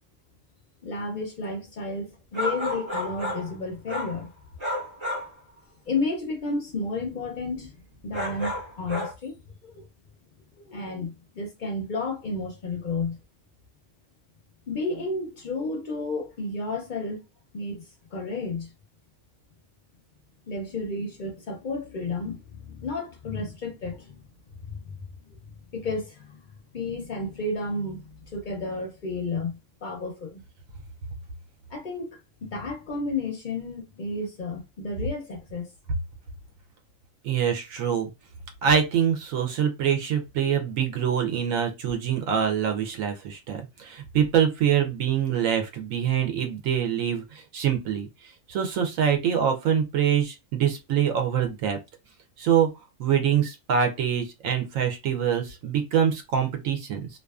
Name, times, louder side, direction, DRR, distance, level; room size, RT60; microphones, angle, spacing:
voice 1, 0.8-4.3 5.9-7.8 8.0-9.8 10.6-13.2 14.7-17.2 17.5-17.9 18.1-18.7 20.5-24.2 24.6-24.8 25.7-26.4 26.7-30.4 31.7-35.7, left 3 dB, 55° left, 0.6 m, -32 dB
sound 1, 2.3-3.5 3.9-4.2 4.6-5.3 8.1-9.1, left 1 dB, 25° right, 0.7 m, -31 dB
voice 2, 37.2-38.1 38.6-51.8 52.4-52.7 53.0-57.1, right 8 dB, 80° right, 1.0 m, -25 dB
2.5 x 2.4 x 2.3 m
omnidirectional pair, 1.4 m